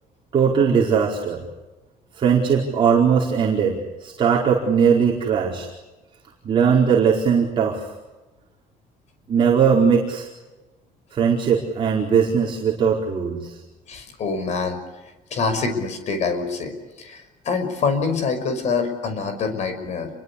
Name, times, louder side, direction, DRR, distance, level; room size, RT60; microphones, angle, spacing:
voice 1, 0.3-1.4 2.1-5.7 6.4-7.9 9.3-10.3 11.1-13.6, right 6 dB, 35° right, -2 dB, 4.7 m, -19 dB
voice 2, 13.9-14.8 15.3-20.1, left 4 dB, 50° left, 8 dB, 5.7 m, -25 dB
29.5 x 23.0 x 8.6 m, 1.1 s
cardioid pair, 150°, 15 cm